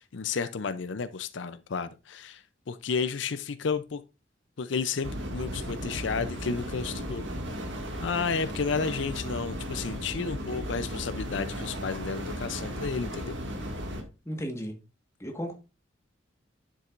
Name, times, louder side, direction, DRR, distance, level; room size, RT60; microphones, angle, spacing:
voice 1, 0.0-4.0 4.6-7.2 8.0-13.4, left 5 dB, 70° left, 0.5 m, -32 dB
sound 1, 5.0-14.0, equal, 70° right, 2.0 m, -35 dB
voice 2, 14.2-14.7 15.2-15.5, equal, 15° left, 1.5 m, -34 dB
9.7 x 7.6 x 2.5 m
head